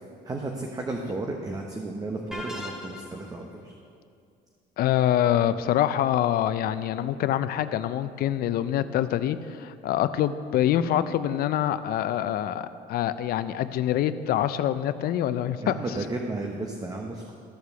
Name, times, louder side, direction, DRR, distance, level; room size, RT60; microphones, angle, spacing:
voice 1, 0.2-3.7 15.6-17.4, right 2 dB, 20° right, 1 dB, 0.8 m, -33 dB
sound 1, 2.3-3.3, left 1 dB, 5° right, 1.5 m, -38 dB
voice 2, 4.8-15.8, left 11 dB, 65° left, 12 dB, 0.5 m, -25 dB
13.0 x 4.8 x 6.7 m, 2.3 s
cardioid pair, 110°, 17 cm